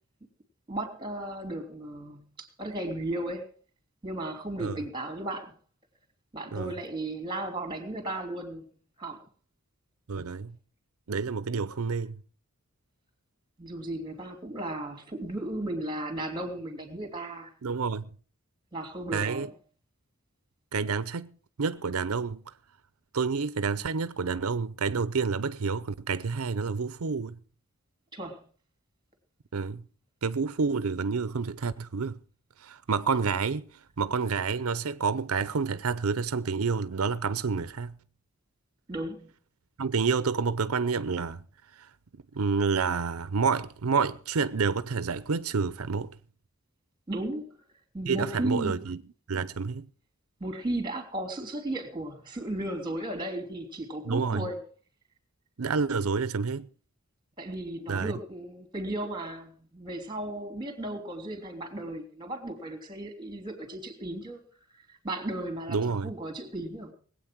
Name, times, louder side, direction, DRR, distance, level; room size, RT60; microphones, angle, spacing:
voice 1, 0.7-3.5 4.0-5.6 6.3-8.6 9.0-9.2 13.6-17.5 18.7-19.5 28.1-28.5 38.9-39.3 47.1-47.5 47.9-48.8 50.4-54.6 57.4-64.4 64.7-66.9, right 1 dB, 20° right, 3.1 m, -35 dB
voice 2, 10.1-10.5 11.1-12.2 17.6-18.1 19.1-19.5 20.7-21.3 21.6-22.4 23.1-27.4 29.5-29.8 30.2-32.2 32.6-33.7 34.0-37.9 39.8-41.4 41.8-41.9 42.3-46.1 48.1-49.0 49.3-49.9 54.1-54.4 55.6-56.7 57.9-58.1 65.7-66.1, right 5 dB, 85° right, 0.6 m, -29 dB
20.0 x 8.6 x 6.0 m
head